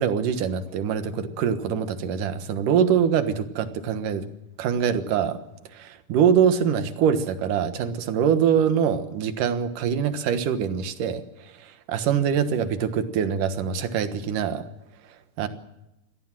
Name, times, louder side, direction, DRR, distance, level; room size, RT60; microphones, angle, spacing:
voice 1, 0.0-4.2 4.6-5.4 5.7-14.6 15.4-15.5, right 8 dB, 85° right, 10 dB, 3.0 m, -24 dB
25.0 x 17.5 x 7.5 m, 0.92 s
omnidirectional pair, 3.6 m